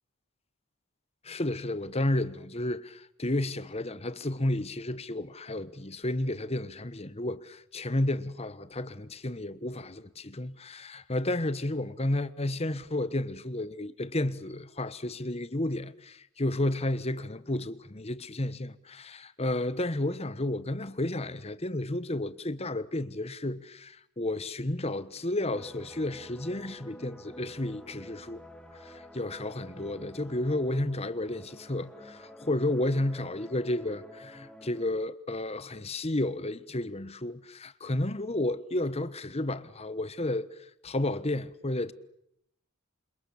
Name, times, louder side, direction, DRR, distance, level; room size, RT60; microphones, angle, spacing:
voice 1, 1.2-28.4 28.8-41.9, left 1 dB, 30° left, 1.2 m, -32 dB
sound 1, 25.5-34.9, equal, 5° left, 3.0 m, -49 dB
29.0 x 27.5 x 7.2 m
head